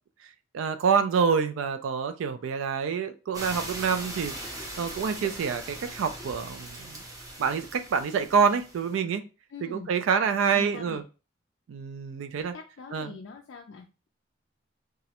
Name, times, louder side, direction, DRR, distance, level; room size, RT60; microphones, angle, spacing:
voice 1, 0.5-7.0 7.4-9.2 9.6-11.0 11.7-12.5 12.9-13.1, right 6 dB, 80° right, 9 dB, 0.3 m, -27 dB
sound 1, 3.3-9.0, right 1 dB, 20° right, 0.4 m, -40 dB
voice 2, 9.5-9.9 10.5-11.0 12.4-14.1, left 4 dB, 65° left, 1 dB, 0.3 m, -43 dB
2.4 x 2.0 x 2.8 m, 0.32 s
head